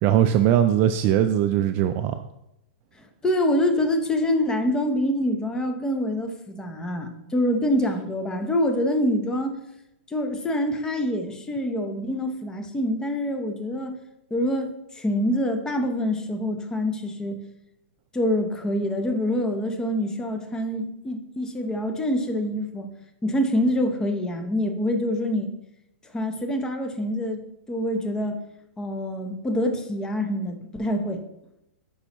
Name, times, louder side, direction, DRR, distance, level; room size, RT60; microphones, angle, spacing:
voice 1, 0.0-2.2, right 11 dB, 35° right, 8 dB, 0.3 m, -20 dB
voice 2, 3.0-9.6 10.1-14.0 14.3-17.4 18.1-22.9 23.2-25.5 26.1-27.4 27.7-28.5 28.8-31.2, left 1 dB, 10° left, 6 dB, 0.8 m, -26 dB
8.2 x 5.4 x 3.0 m, 0.85 s
hypercardioid pair, 135°, 7 cm